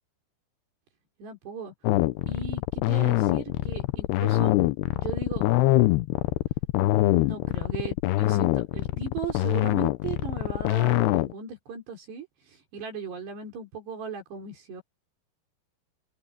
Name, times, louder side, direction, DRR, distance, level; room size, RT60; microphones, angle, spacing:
voice 1, 1.2-1.7 2.3-4.6 5.0-5.5 7.2-14.8, right 5 dB, 75° right, 6.6 m, -37 dB
sound 1, 1.8-11.3, left 17 dB, 80° left, 2.8 m, -24 dB
open air
omnidirectional pair, 4.8 m